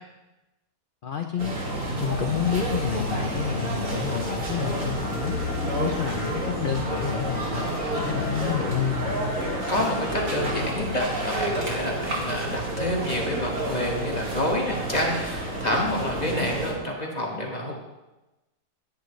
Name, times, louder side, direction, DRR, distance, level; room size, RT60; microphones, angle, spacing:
voice 1, 1.0-1.6 2.0-5.3 5.8-9.2, left 9 dB, 75° left, 5 dB, 0.4 m, -29 dB
sound 1, 1.4-16.7, right 1 dB, 55° right, 2.3 m, -29 dB
Singing, 4.6-10.7, equal, 50° left, 1.5 m, -40 dB
voice 2, 9.7-17.7, left 1 dB, 25° left, -1 dB, 1.4 m, -28 dB
10.0 x 9.8 x 3.1 m, 1.0 s
omnidirectional pair, 1.7 m